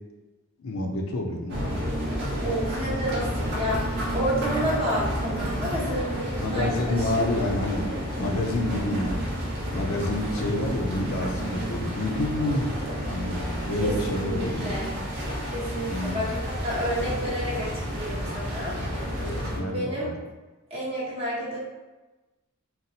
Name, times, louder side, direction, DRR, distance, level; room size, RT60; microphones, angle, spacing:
voice 1, 0.6-1.7 6.4-9.3 9.7-12.7 13.1-14.8 15.9-16.3 18.8-20.2, left 1 dB, 65° left, 1 dB, 0.4 m, -29 dB
sound 1, 1.5-19.6, equal, 55° right, 0.7 m, -30 dB
voice 2, 2.3-7.3 13.8-15.0 15.5-18.7 19.1-20.1 20.7-21.6, equal, 25° right, -7 dB, 1.0 m, -30 dB
4.0 x 2.0 x 2.7 m, 1.1 s
head